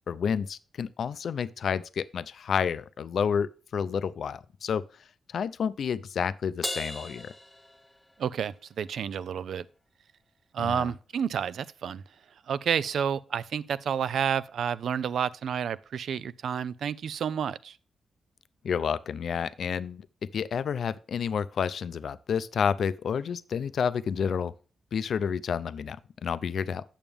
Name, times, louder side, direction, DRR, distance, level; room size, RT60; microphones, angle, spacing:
voice 1, 0.1-4.8 5.3-7.3 10.6-10.9 18.6-20.1 20.3-24.5 24.9-26.8, left 7 dB, 65° left, 0.4 m, -30 dB
Crash cymbal, 6.6-8.4, left 1 dB, 5° left, 0.7 m, -37 dB
voice 2, 8.2-9.6 10.5-12.0 12.5-17.8, right 8 dB, 75° right, 0.4 m, -30 dB
8.9 x 7.1 x 3.4 m
wide cardioid pair, 130°, 0 cm